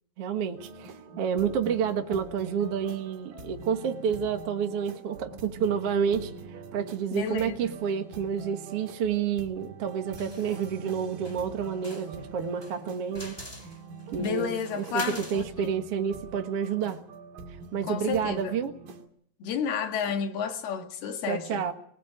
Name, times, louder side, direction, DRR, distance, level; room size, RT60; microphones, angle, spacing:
voice 1, 0.2-13.4 14.1-14.5 14.8-17.0 17.7-18.7 21.3-21.7, right 7 dB, 50° right, 2.0 m, -29 dB
sound 1, 0.6-19.1, right 4 dB, 65° right, 4.0 m, -44 dB
voice 2, 7.1-7.5 14.2-15.7 17.8-18.5 19.4-21.7, left 6 dB, 90° left, 4.0 m, -31 dB
sound 2, 10.2-10.7 11.2-11.5 11.8-15.5, left 1 dB, 5° left, 3.1 m, -44 dB
29.0 x 21.5 x 5.1 m
omnidirectional pair, 4.4 m